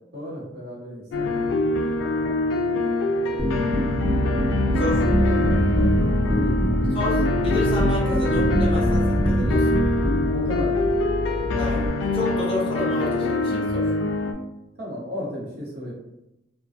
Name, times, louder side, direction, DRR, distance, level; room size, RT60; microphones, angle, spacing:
voice 1, 0.1-1.4 4.8-5.9 6.3-7.0 10.3-10.9 14.8-15.9, equal, 60° right, -4 dB, 0.8 m, -34 dB
sound 1, 1.1-14.3, left 2 dB, 85° left, 0.3 m, -25 dB
sound 2, 3.4-10.2, equal, ahead, 1.1 m, -24 dB
sound 3, 3.9-11.9, equal, 85° right, 0.3 m, -29 dB
voice 2, 6.9-9.8 11.5-13.9, left 1 dB, 30° left, -4 dB, 0.6 m, -30 dB
2.5 x 2.2 x 2.3 m, 0.90 s
head